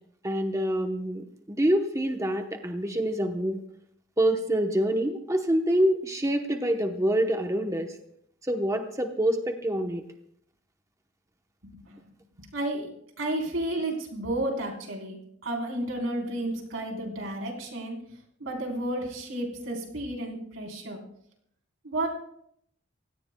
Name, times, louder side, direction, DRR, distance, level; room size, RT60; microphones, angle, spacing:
voice 1, 0.2-3.6 4.2-7.9 8.5-10.0, right 1 dB, 15° right, 4 dB, 1.0 m, -26 dB
voice 2, 11.6-12.0 12.4-12.9 13.2-15.2 15.4-18.0 18.4-21.0 21.8-22.1, right 1 dB, 85° right, -1 dB, 4.0 m, -32 dB
26.5 x 17.0 x 2.3 m, 0.71 s
head